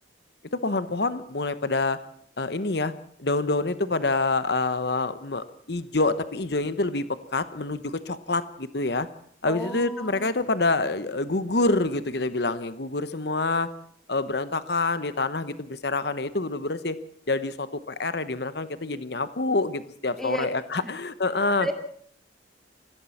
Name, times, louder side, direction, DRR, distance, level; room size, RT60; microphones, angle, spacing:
voice 1, 0.5-2.0 2.4-2.9 3.2-7.1 7.3-9.1 9.4-13.7 14.1-17.0 17.3-21.7, left 3 dB, 55° left, 13 dB, 1.1 m, -27 dB
voice 2, 9.5-10.3 20.2-20.5 20.8-20.9 21.6-21.9, right 1 dB, ahead, 5 dB, 2.4 m, -33 dB
24.5 x 15.5 x 7.2 m, 0.64 s
head